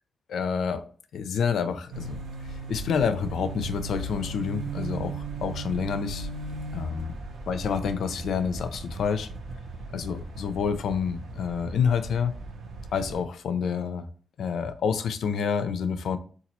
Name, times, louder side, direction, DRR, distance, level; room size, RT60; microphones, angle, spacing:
voice 1, 0.3-0.8 1.1-2.2 2.7-6.3 6.7-7.1 7.5-9.3 9.9-12.3 12.9-14.1 14.4-16.2, left 6 dB, 80° left, 0.4 m, -28 dB
sound 1, 1.9-13.2, right 3 dB, 80° right, 0.6 m, -38 dB
4.0 x 2.3 x 2.9 m
wide cardioid pair, 125°, 0 cm